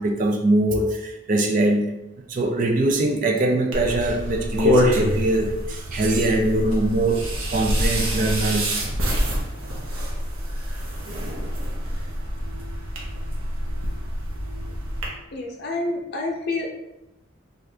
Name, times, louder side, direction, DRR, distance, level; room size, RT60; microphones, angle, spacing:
voice 1, 0.0-1.9 2.3-7.2 7.5-8.8, right 2 dB, 40° right, 2 dB, 0.4 m, -22 dB
sound 1, 3.7-15.1, equal, 90° right, 0.8 m, -26 dB
voice 2, 15.3-16.7, left 2 dB, 55° left, 1 dB, 0.5 m, -28 dB
2.7 x 2.4 x 3.3 m, 0.90 s
head